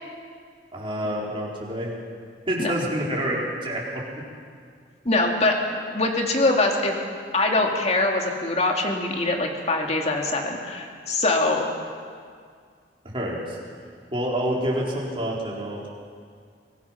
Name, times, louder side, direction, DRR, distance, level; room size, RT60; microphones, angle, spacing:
voice 1, 0.7-1.9 2.5-4.2 13.1-13.6 14.1-15.9, right 1 dB, 30° right, -4 dB, 4.3 m, -28 dB
voice 2, 5.0-6.9 7.3-11.7, left 2 dB, 40° left, 1 dB, 2.5 m, -23 dB
24.5 x 19.0 x 5.9 m, 2.1 s
head